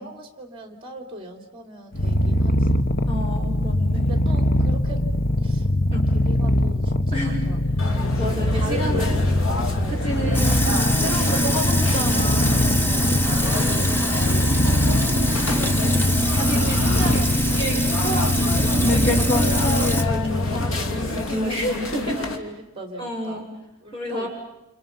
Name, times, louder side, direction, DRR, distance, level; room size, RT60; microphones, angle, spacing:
voice 1, 0.0-2.8 3.6-5.0 5.4-5.7 6.1-7.6 7.9-10.1 11.3-11.9 12.8-13.7 16.2-16.5 21.8-23.5 23.8-24.3, right 1 dB, 25° right, 4 dB, 3.7 m, -39 dB
Purr, 1.9-21.3, left 1 dB, 45° left, 1.2 m, -22 dB
voice 2, 3.1-4.1 5.9-6.1 7.1-7.4 8.2-9.2 9.9-12.9 14.2-15.5 15.7-16.1 16.4-22.2 23.0-23.4 23.9-24.3, equal, 25° left, -1 dB, 6.8 m, -31 dB
sound 1, 7.8-22.4, left 2 dB, 80° left, 2.8 m, -29 dB
Sink (filling or washing), 10.3-20.0, equal, 10° left, 1.2 m, -24 dB
29.5 x 29.0 x 5.6 m, 0.87 s
head